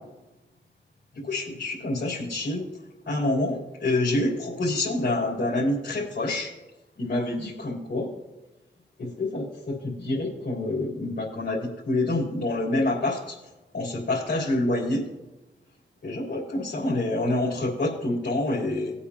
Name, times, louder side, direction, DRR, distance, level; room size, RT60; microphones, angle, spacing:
voice 1, 1.2-2.7 3.1-6.5 7.0-8.1 9.0-13.4 13.7-15.0 16.0-18.9, left 2 dB, 70° left, -6 dB, 3.7 m, -27 dB
19.0 x 8.5 x 2.9 m, 1.0 s
cardioid pair, 45°, 19 cm